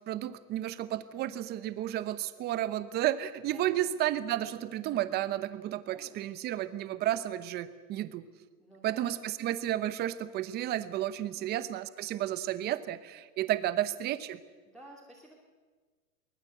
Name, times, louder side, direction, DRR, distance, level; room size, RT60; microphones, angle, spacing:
voice 1, 0.1-8.3 8.8-14.4, right 13 dB, 20° right, 14 dB, 0.9 m, -32 dB
voice 2, 3.5-3.9 5.9-6.6 8.6-9.1 11.3-11.5 14.6-15.3, right 1 dB, ahead, -3 dB, 3.0 m, -54 dB
23.5 x 18.5 x 8.0 m, 1.4 s
hypercardioid pair, 150°, 45 cm